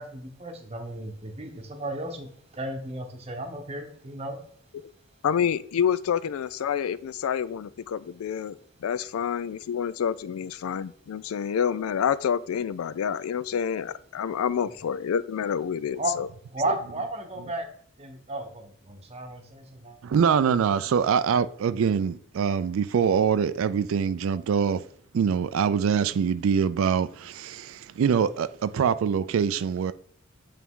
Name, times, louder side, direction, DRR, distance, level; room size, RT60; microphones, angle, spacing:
voice 1, 0.0-4.4 16.0-16.1 16.5-17.7 18.0-20.0, right 1 dB, 30° right, 0.9 m, -34 dB
voice 2, 5.2-16.3, left 8 dB, 90° left, 0.3 m, -28 dB
voice 3, 20.0-24.8 25.1-29.9, right 7 dB, 75° right, 0.3 m, -24 dB
8.5 x 3.4 x 3.7 m
head